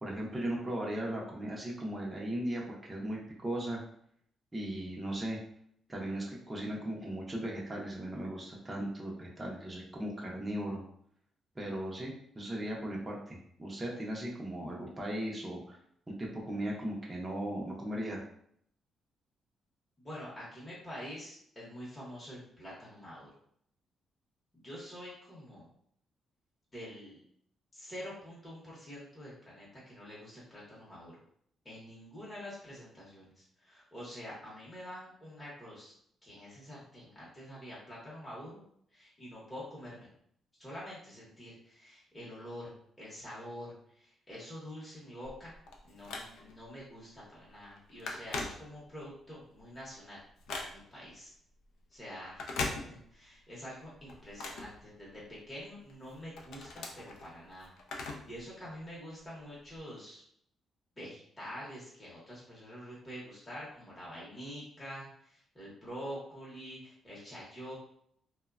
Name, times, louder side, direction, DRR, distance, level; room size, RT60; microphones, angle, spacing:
voice 1, 0.0-3.8 4.5-5.4 5.9-10.8 11.6-15.8 16.2-18.2, right 1 dB, 15° right, -3 dB, 0.5 m, -37 dB
voice 2, 20.0-23.3 24.5-25.7 26.7-27.2 27.7-31.2 31.6-35.9 36.2-38.6 38.9-40.1 40.6-45.5 45.8-50.2 50.7-51.3 51.9-60.2 61.0-67.8, equal, 15° left, -8 dB, 0.8 m, -46 dB
Telephone, 45.3-46.7 47.2-47.4 47.6-49.1 49.5-51.1 52.2-53.4 53.7-55.4 55.9-58.4 58.7-58.8 59.7-59.8, left 3 dB, 90° left, 0.4 m, -41 dB
3.1 x 2.0 x 2.3 m, 0.68 s
cardioid pair, 145°, 0 cm